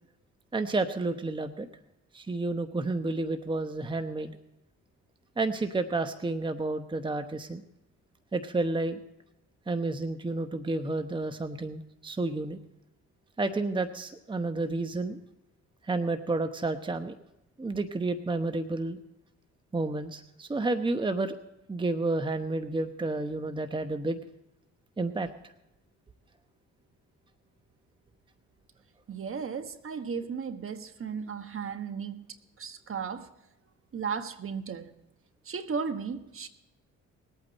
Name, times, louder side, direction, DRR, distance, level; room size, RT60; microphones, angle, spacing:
voice 1, 0.5-1.7 2.1-4.3 5.4-7.6 8.3-9.0 9.7-12.6 13.4-15.2 15.8-17.1 17.6-19.0 19.7-21.4 21.7-24.2 25.0-25.5, right 2 dB, 15° right, 8 dB, 0.9 m, -30 dB
voice 2, 29.1-32.2 32.6-33.3 33.9-34.9 35.5-36.5, right 6 dB, 45° right, 9 dB, 1.3 m, -35 dB
21.0 x 8.8 x 4.1 m, 0.89 s
cardioid pair, 90°, 30 cm